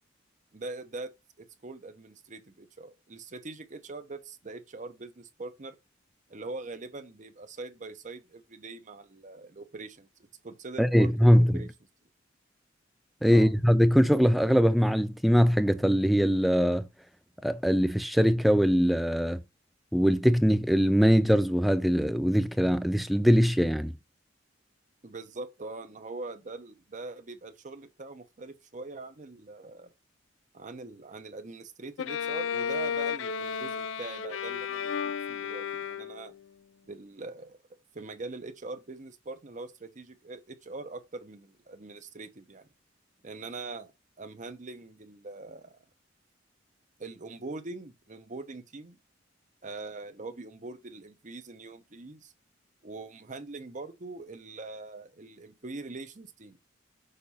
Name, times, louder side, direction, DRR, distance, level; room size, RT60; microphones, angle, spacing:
voice 1, 0.5-1.1 1.4-5.8 6.3-10.1 10.4-11.7 13.3-13.5 25.0-29.9 30.5-36.3 36.8-37.6 37.9-42.7 43.2-43.9 44.2-45.8 47.0-49.0 49.6-52.3 52.8-56.6, right 3 dB, 40° right, 0.8 m, -42 dB
voice 2, 10.8-11.6 13.2-16.9 17.4-19.4 19.9-23.9, equal, ahead, 0.3 m, -22 dB
Bowed string instrument, 32.0-36.4, left 7 dB, 70° left, 0.4 m, -33 dB
6.5 x 2.6 x 5.5 m
head